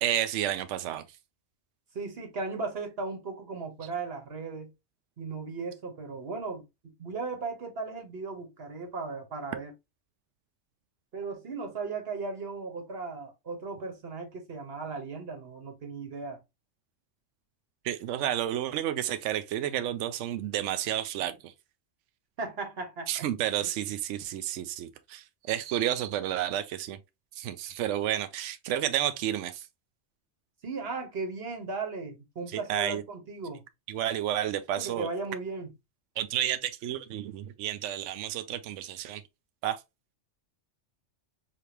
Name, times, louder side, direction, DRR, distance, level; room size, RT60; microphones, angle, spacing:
voice 1, 0.0-1.0 17.8-21.5 23.1-27.0 27.3-29.7 32.5-33.0 33.9-35.1 36.2-39.2 39.6-39.8, right 11 dB, 80° right, 0.9 m, -31 dB
voice 2, 1.9-4.7 5.2-9.7 11.1-16.4 22.4-23.1 30.6-33.6 34.8-35.7, right 4 dB, 55° right, 1.4 m, -36 dB
5.0 x 2.8 x 2.9 m
omnidirectional pair, 1.2 m